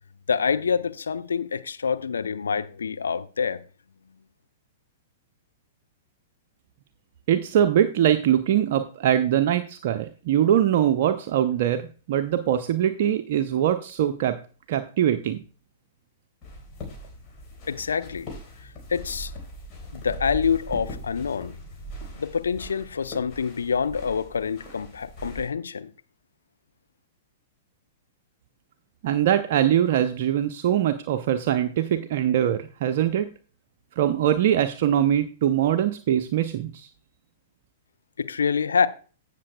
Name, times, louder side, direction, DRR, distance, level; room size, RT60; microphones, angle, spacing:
voice 1, 0.3-3.6 17.7-18.3 18.9-19.3 19.9-21.5 22.2-25.9 38.2-38.9, left 6 dB, 75° left, 0.7 m, -26 dB
voice 2, 7.3-14.4 14.7-15.4 29.0-33.3 34.0-36.9, right 10 dB, 50° right, 0.6 m, -22 dB
sound 1, 16.4-25.5, equal, 30° left, 4.2 m, -40 dB
16.0 x 6.7 x 2.3 m
figure-of-eight pair, 105°, 0 cm